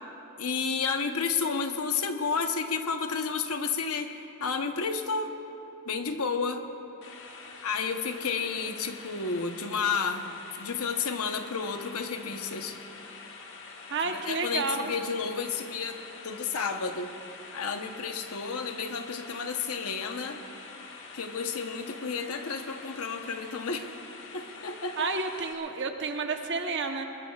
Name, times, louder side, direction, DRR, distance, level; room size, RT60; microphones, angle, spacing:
voice 1, 0.4-5.3 5.9-6.7 7.6-10.3 10.6-12.8 14.0-16.0 16.2-17.1 17.5-20.4 21.1-23.9 24.3-25.1, left 5 dB, 75° left, 6 dB, 1.0 m, -31 dB
sound 1, 7.0-25.5, left 4 dB, 55° left, 1.3 m, -46 dB
voice 2, 13.9-14.9 25.0-27.1, right 4 dB, 55° right, 4 dB, 1.0 m, -30 dB
22.0 x 21.0 x 2.4 m, 2.9 s
head